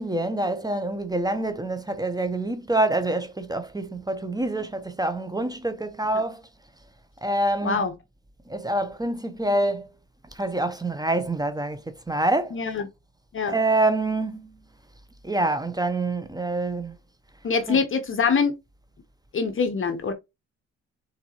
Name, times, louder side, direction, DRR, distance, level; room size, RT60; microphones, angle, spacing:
voice 1, 0.0-6.4 7.2-7.9 8.5-9.9 10.3-12.6 13.5-14.6 15.2-16.9 17.7-17.8, right 2 dB, 15° right, 0.7 m, -26 dB
voice 2, 12.5-12.8 13.3-13.5 17.4-18.6 19.3-20.1, left 5 dB, 45° left, 1.0 m, -24 dB
4.4 x 4.0 x 2.9 m
cardioid pair, 90°, 30 cm